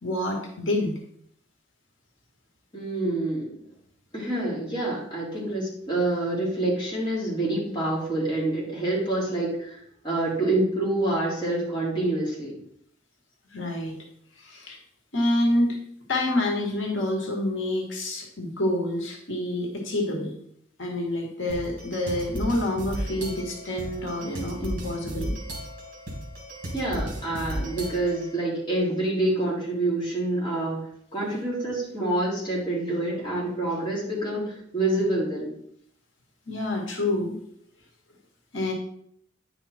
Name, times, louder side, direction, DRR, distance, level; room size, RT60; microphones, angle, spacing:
voice 1, 0.0-1.0 13.5-14.0 14.4-14.8 15.1-15.8 16.1-20.3 20.8-25.3 36.5-37.4 38.5-38.7, left 1 dB, 85° left, 1 dB, 1.8 m, -27 dB
voice 2, 2.7-3.6 4.1-12.5 26.7-30.9 31.1-35.5, right 2 dB, 25° left, -5 dB, 3.3 m, -27 dB
sound 1, 21.5-28.3, equal, 45° right, 2.8 m, -35 dB
10.0 x 5.5 x 4.4 m, 0.68 s
head